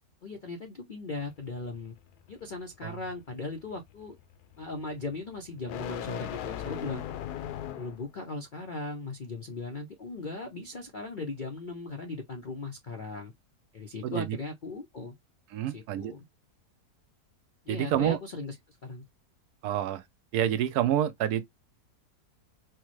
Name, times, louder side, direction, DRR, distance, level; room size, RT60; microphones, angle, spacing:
voice 1, 0.2-2.0 2.3-4.2 4.6-7.0 7.8-13.3 13.7-15.1 15.7-16.2 17.7-19.1, left 3 dB, 65° left, 0.5 m, -38 dB
sound 1, 1.2-8.1, left 11 dB, 80° left, 1.1 m, -40 dB
voice 2, 14.0-14.4 15.5-16.1 17.7-18.2 19.6-20.0 20.3-21.4, right 10 dB, 75° right, 1.1 m, -28 dB
4.5 x 2.1 x 2.9 m
omnidirectional pair, 1.7 m